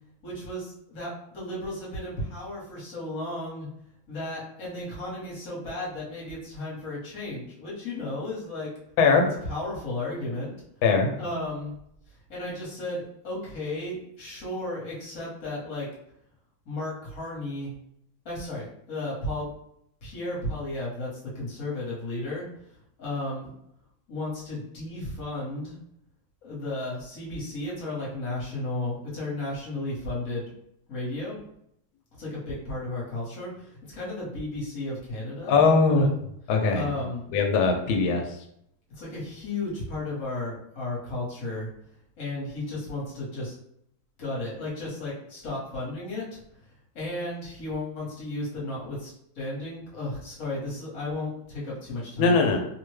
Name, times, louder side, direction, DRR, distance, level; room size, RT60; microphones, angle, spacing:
voice 1, 0.2-3.7 4.1-8.7 9.4-10.5 11.2-11.7 12.3-15.9 16.6-17.7 18.2-19.5 20.0-21.1 21.3-22.4 23.0-23.5 24.1-25.7 26.4-30.5 30.9-31.4 32.2-35.6 35.9-36.1 36.7-37.3 39.0-41.7 42.2-43.5 44.2-46.4 46.9-52.4, left 2 dB, 50° left, -6 dB, 1.3 m, -34 dB
voice 2, 9.0-9.3 10.8-11.1 35.5-36.1 36.5-36.9 37.3-38.2 52.2-52.6, left 4 dB, 80° left, 3 dB, 1.3 m, -20 dB
3.2 x 2.1 x 3.1 m, 0.74 s
omnidirectional pair, 2.2 m